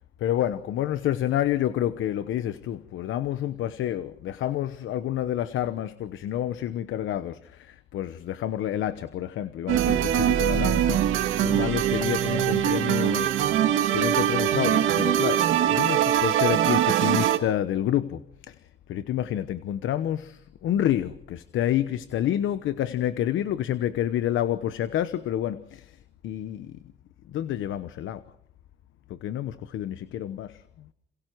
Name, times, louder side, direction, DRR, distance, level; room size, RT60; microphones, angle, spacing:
voice 1, 0.2-11.0 11.4-13.4 13.9-18.6 18.9-25.9 26.2-26.8 27.3-28.2 29.1-30.6, left 11 dB, 80° left, 1.0 m, -28 dB
sound 1, 9.7-17.4, right 11 dB, 85° right, 2.1 m, -22 dB
29.5 x 27.5 x 4.7 m
cardioid pair, 90°, 20 cm